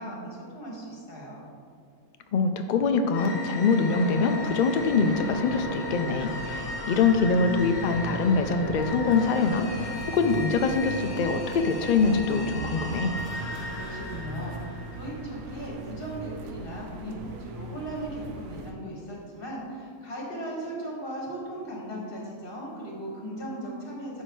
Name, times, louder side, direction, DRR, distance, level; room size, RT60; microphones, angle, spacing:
voice 1, 0.0-1.4 13.7-24.2, right 1 dB, 45° left, -3 dB, 1.8 m, -37 dB
voice 2, 2.3-13.2, left 4 dB, 85° left, 7 dB, 0.4 m, -24 dB
sound 1, 3.1-15.6, left 2 dB, 60° left, 1.3 m, -37 dB
sound 2, 3.9-18.7, right 2 dB, 70° right, 0.9 m, -40 dB
11.0 x 4.7 x 3.1 m, 2.4 s
omnidirectional pair, 1.3 m